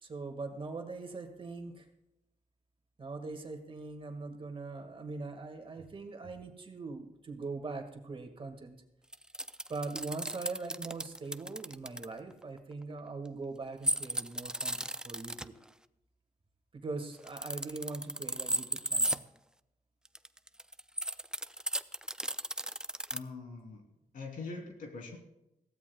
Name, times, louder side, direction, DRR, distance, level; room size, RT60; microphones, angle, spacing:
voice 1, 0.0-1.9 3.0-8.8 9.7-15.5 16.7-19.2, right 3 dB, 40° right, 4 dB, 1.9 m, -41 dB
sound 1, 9.1-12.1 13.8-15.5 17.2-19.2 20.1-23.2, right 1 dB, 5° right, 0.4 m, -34 dB
voice 2, 23.1-23.8 24.1-25.2, left 4 dB, 80° left, 2 dB, 3.2 m, -43 dB
22.5 x 15.5 x 2.3 m, 0.89 s
cardioid pair, 105°, 14 cm